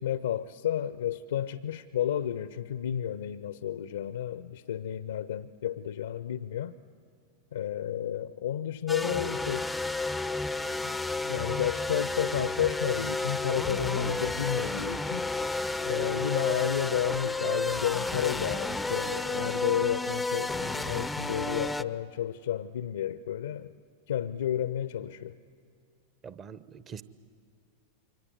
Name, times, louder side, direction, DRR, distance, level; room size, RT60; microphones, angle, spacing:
voice 1, 0.0-6.7 7.5-9.7 10.8-10.9 11.2-15.3 15.9-23.7 24.1-25.4, left 10 dB, 65° left, 0.6 m, -31 dB
sound 1, 8.9-21.8, left 2 dB, 5° left, 0.6 m, -31 dB
voice 2, 26.2-27.0, right 7 dB, 25° right, 0.9 m, -43 dB
28.0 x 24.0 x 8.0 m
figure-of-eight pair, 90°, 0 cm